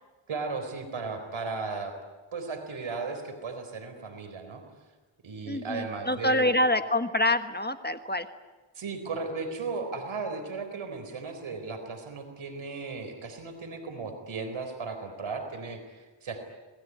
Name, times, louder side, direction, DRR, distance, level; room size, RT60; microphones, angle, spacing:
voice 1, 0.3-1.9 2.3-4.6 5.2-6.6 8.8-16.4, right 4 dB, 85° right, 6 dB, 4.1 m, -36 dB
voice 2, 5.5-8.3, left 1 dB, 20° left, 9 dB, 1.4 m, -26 dB
26.5 x 20.5 x 9.4 m, 1.3 s
wide cardioid pair, 75°, 47 cm